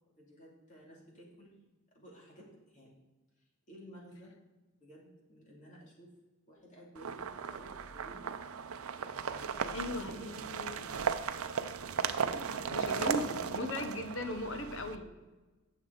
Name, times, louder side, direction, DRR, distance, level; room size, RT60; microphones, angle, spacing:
voice 1, 0.1-1.5 1.9-2.9 3.4-4.4 4.8-6.2 6.5-8.3 9.3-11.1 12.2-12.8 13.1-13.8, equal, 35° left, -4 dB, 2.5 m, -53 dB
sound 1, 6.9-14.9, right 6 dB, 80° right, 0.5 m, -36 dB
voice 2, 9.7-10.9 12.7-15.1, left 1 dB, 65° left, 7 dB, 1.1 m, -38 dB
10.0 x 7.2 x 3.9 m, 1.2 s
head